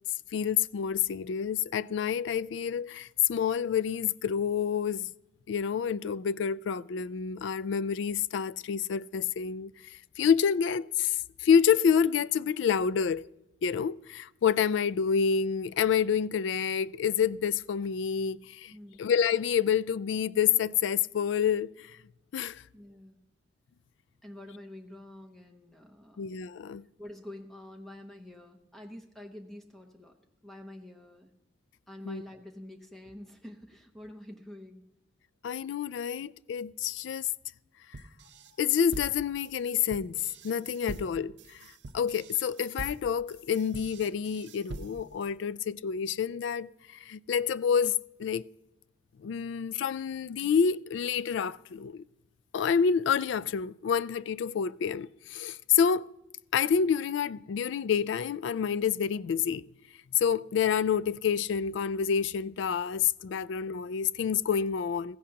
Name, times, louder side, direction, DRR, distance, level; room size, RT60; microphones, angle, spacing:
voice 1, 0.3-5.1 5.5-13.3 13.6-18.7 19.0-22.0 22.3-22.6 26.2-26.9 32.1-32.2 35.4-37.3 37.9-38.0 38.6-48.5 49.2-52.0 52.5-56.1 56.5-59.7 60.2-65.2, left 7 dB, 70° left, 0.3 m, -28 dB
voice 2, 22.7-23.2 24.2-26.2 27.0-30.1 30.4-31.3 31.9-34.8, left 1 dB, ahead, 0.8 m, -47 dB
sound 1, 37.9-45.2, right 2 dB, 65° right, 0.6 m, -44 dB
16.0 x 15.0 x 2.9 m
head